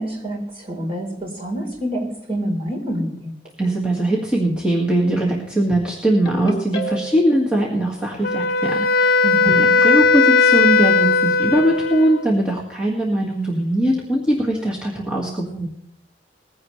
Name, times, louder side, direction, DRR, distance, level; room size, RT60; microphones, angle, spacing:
voice 1, 0.0-3.3 9.2-9.7, equal, 35° right, -1 dB, 4.2 m, -27 dB
voice 2, 3.6-15.7, right 1 dB, 5° right, -4 dB, 2.0 m, -21 dB
Ringtone, 6.2-7.4, right 1 dB, 25° left, 2.6 m, -29 dB
Wind instrument woodwind instrument, 8.2-12.3, left 4 dB, 55° left, 0.8 m, -17 dB
20.5 x 16.0 x 3.3 m, 0.73 s
head